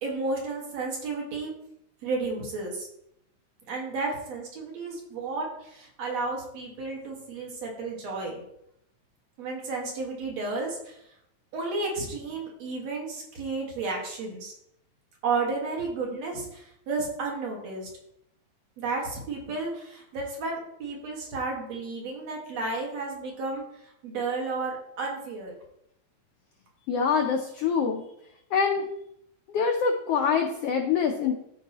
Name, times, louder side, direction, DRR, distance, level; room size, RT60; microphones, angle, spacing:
voice 1, 0.0-1.5 2.0-2.9 3.7-8.4 9.4-11.0 11.5-14.5 15.2-17.9 18.8-23.6 24.0-25.5, right 3 dB, 65° right, -1 dB, 2.6 m, -32 dB
voice 2, 26.9-28.0 28.5-28.9 29.5-31.3, left 6 dB, 80° left, 4 dB, 1.4 m, -25 dB
13.5 x 4.7 x 2.9 m, 0.77 s
omnidirectional pair, 3.4 m